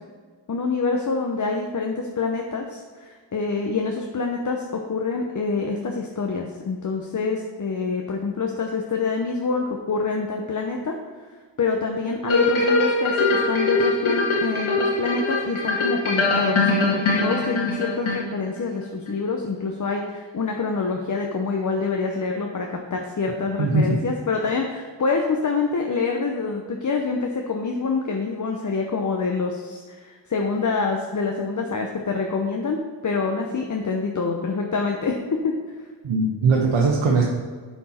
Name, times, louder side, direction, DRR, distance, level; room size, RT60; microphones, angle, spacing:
voice 1, 0.5-10.9 11.6-35.1 35.4-35.5, left 4 dB, 40° left, 2 dB, 0.8 m, -26 dB
sound 1, 12.3-18.6 19.1-19.2, left 2 dB, 85° left, 1.8 m, -22 dB
voice 2, 23.6-24.0 36.0-37.2, right 3 dB, 85° right, -1 dB, 1.0 m, -20 dB
9.7 x 4.5 x 4.3 m, 1.5 s
cardioid pair, 80°, 48 cm